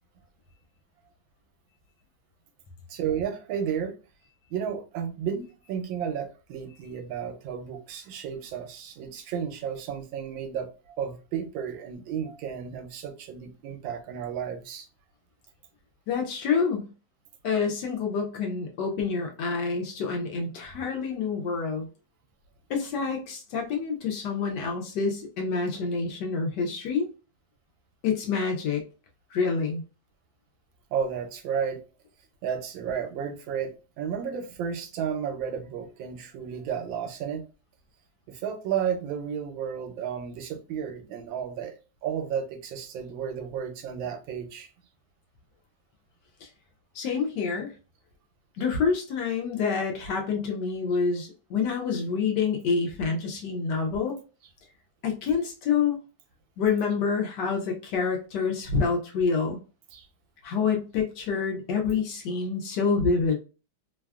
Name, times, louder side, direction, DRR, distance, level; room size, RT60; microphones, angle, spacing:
voice 1, 2.9-3.9 4.5-10.7 11.0-14.9 30.9-31.8 32.4-37.5 38.3-44.7 59.9-60.1, right 7 dB, 80° right, 1.3 m, -32 dB
voice 2, 16.1-16.9 17.4-21.9 22.7-27.1 28.0-28.8 29.3-29.8 46.4-46.5 46.9-47.7 48.6-54.2 55.0-56.0 56.6-59.6 60.4-63.4, left 5 dB, 75° left, 1.1 m, -27 dB
3.2 x 2.2 x 2.3 m
omnidirectional pair, 2.1 m